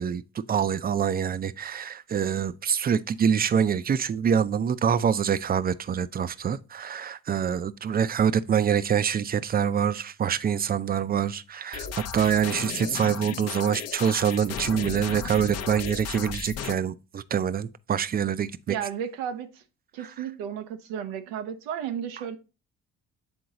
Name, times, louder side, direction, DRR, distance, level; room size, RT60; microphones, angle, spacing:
voice 1, 0.0-18.7, right 8 dB, 30° right, 0.5 m, -25 dB
sound 1, 11.7-16.7, left 8 dB, 60° left, 0.7 m, -35 dB
voice 2, 18.7-19.6 19.9-22.4, right 8 dB, 90° right, 0.7 m, -33 dB
8.0 x 3.8 x 3.9 m
supercardioid pair, 60°, 29 cm